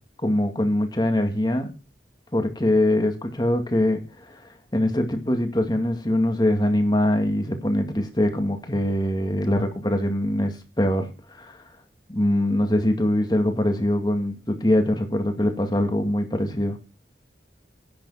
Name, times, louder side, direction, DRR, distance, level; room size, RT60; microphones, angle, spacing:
voice 1, 0.2-1.7 2.3-4.4 4.7-11.1 11.4-11.6 12.1-16.8, left 1 dB, 25° left, 2.1 m, -23 dB
10.5 x 8.3 x 6.4 m
head